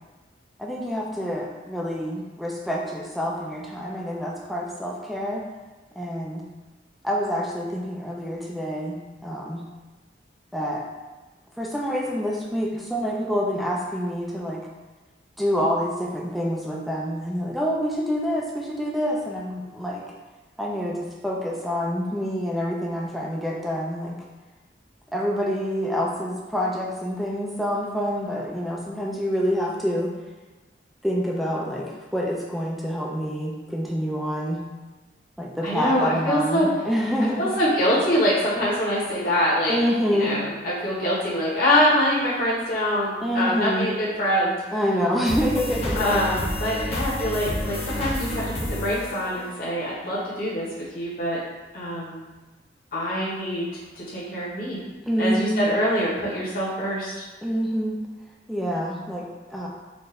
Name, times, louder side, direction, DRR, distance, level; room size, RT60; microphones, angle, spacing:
voice 1, 0.6-5.4 6.0-6.4 7.0-9.6 10.5-10.8 11.6-14.7 15.4-20.0 20.6-24.2 25.1-30.1 31.0-34.6 35.4-37.5 39.7-40.3 43.2-43.9 44.7-46.2 55.1-55.7 57.4-58.0 58.5-59.7, equal, ahead, -3 dB, 0.5 m, -27 dB
voice 2, 35.6-36.7 37.4-39.8 40.1-44.6 45.9-48.4 48.7-50.7 50.9-51.4 51.7-52.2 52.9-53.7 53.9-54.8 55.2-57.1, equal, 50° left, -8 dB, 1.2 m, -24 dB
sound 1, 45.2-50.0, left 1 dB, 35° left, 0.8 m, -30 dB
4.3 x 2.6 x 3.3 m, 1.2 s
head